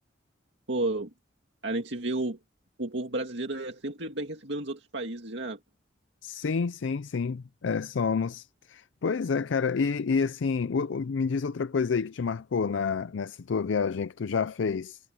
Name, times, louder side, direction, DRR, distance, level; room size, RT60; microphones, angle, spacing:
voice 1, 0.7-1.1 1.6-2.4 2.8-5.6, right 2 dB, 70° right, 2.2 m, -32 dB
voice 2, 6.2-15.0, left 5 dB, 80° left, 0.5 m, -29 dB
head